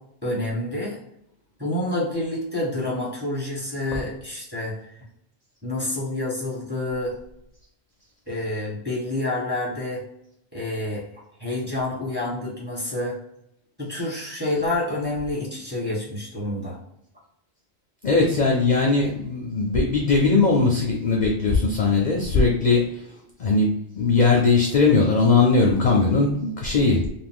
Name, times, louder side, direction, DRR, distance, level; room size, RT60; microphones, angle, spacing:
voice 1, 0.2-1.0 1.6-4.7 5.6-7.1 8.3-10.0 10.5-11.0 11.4-13.1 13.8-16.8, left 1 dB, 10° right, -8 dB, 1.2 m, -28 dB
voice 2, 18.0-23.0 23.4-27.0, left 3 dB, 50° left, 0 dB, 0.6 m, -19 dB
2.5 x 2.5 x 3.5 m, 0.78 s
omnidirectional pair, 1.2 m